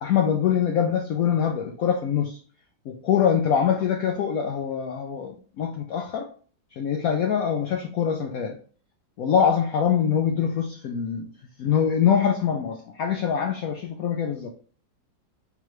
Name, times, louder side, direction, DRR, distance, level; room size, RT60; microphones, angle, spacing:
voice 1, 0.0-2.4 2.9-6.3 6.8-8.6 9.2-11.3 11.6-14.5, left 8 dB, 80° left, 3 dB, 0.7 m, -24 dB
3.5 x 3.0 x 3.0 m, 0.42 s
omnidirectional pair, 2.0 m